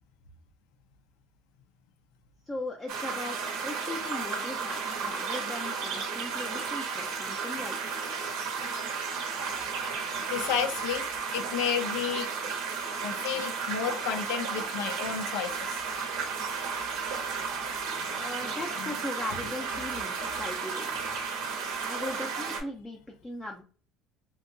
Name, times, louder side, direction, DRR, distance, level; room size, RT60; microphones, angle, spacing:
voice 1, 2.5-8.0 18.2-20.9 21.8-23.6, left 1 dB, 10° left, 0.4 m, -38 dB
sound 1, 2.9-22.6, right 5 dB, 80° right, 0.7 m, -33 dB
voice 2, 10.3-11.0 11.3-12.3 13.0-15.8 18.8-18.9, left 8 dB, 90° left, 0.3 m, -31 dB
2.7 x 2.2 x 2.5 m
cardioid pair, 145°, 0 cm